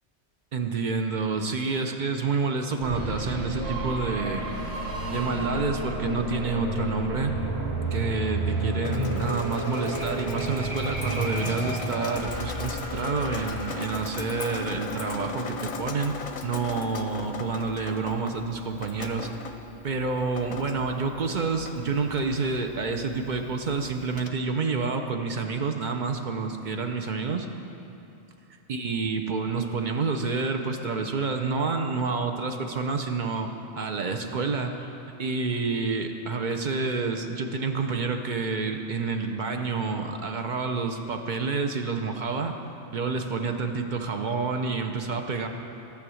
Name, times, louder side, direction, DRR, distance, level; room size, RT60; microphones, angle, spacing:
voice 1, 0.5-4.4 5.1-7.3 7.9-16.2 16.4-19.4 19.8-27.5 28.7-33.5 33.8-34.9 35.2-42.5 42.9-45.5, right 4 dB, 50° right, 5 dB, 0.7 m, -28 dB
sound 1, 2.8-15.5, right 1 dB, 75° right, 1.6 m, -31 dB
Drip, 8.8-24.3, left 4 dB, 45° left, 0.7 m, -39 dB
11.5 x 7.2 x 6.2 m, 2.9 s
omnidirectional pair, 1.1 m